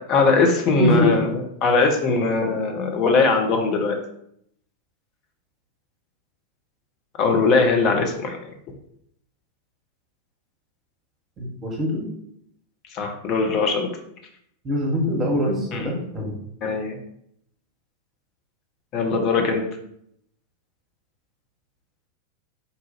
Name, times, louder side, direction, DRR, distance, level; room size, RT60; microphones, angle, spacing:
voice 1, 0.1-1.3 1.6-4.0 7.2-8.4 12.9-13.9 15.7-15.9 16.6-17.0 18.9-19.6, left 4 dB, 35° left, 4 dB, 0.7 m, -20 dB
voice 2, 0.8-1.1 11.4-12.1 14.6-16.3, left 1 dB, 25° right, -2 dB, 1.1 m, -23 dB
4.1 x 2.5 x 4.0 m, 0.72 s
figure-of-eight pair, 90°, 0 cm